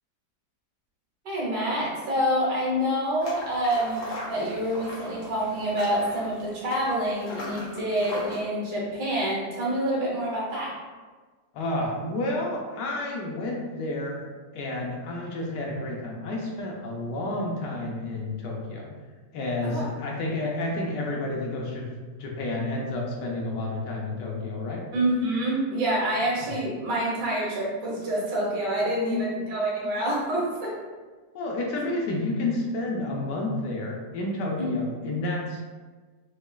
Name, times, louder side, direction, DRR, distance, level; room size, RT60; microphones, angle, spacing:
voice 1, 1.2-10.7 19.6-19.9 24.9-30.7 34.6-34.7 35.0-35.2, right 1 dB, 75° right, -5 dB, 1.6 m, -27 dB
sound 1, 3.2-8.4, left 1 dB, 55° left, 1.0 m, -40 dB
voice 2, 11.5-14.2 14.5-18.9 19.3-21.9 22.2-24.8 29.0-29.3 31.3-35.6, left 2 dB, 75° left, -1 dB, 1.2 m, -30 dB
5.0 x 2.3 x 2.3 m, 1.4 s
omnidirectional pair, 2.0 m